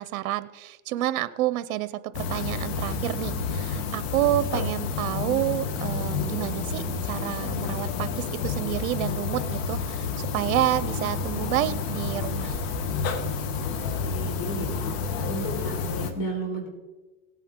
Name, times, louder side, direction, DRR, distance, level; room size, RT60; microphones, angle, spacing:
voice 1, 0.0-12.6, right 15 dB, 80° right, 15 dB, 0.7 m, -29 dB
sound 1, 2.1-16.1, left 5 dB, 65° left, 1.4 m, -30 dB
voice 2, 13.6-14.8 15.2-16.7, right 2 dB, 45° left, 0 dB, 4.6 m, -34 dB
17.5 x 9.1 x 3.7 m, 1.2 s
supercardioid pair, 140°, 42 cm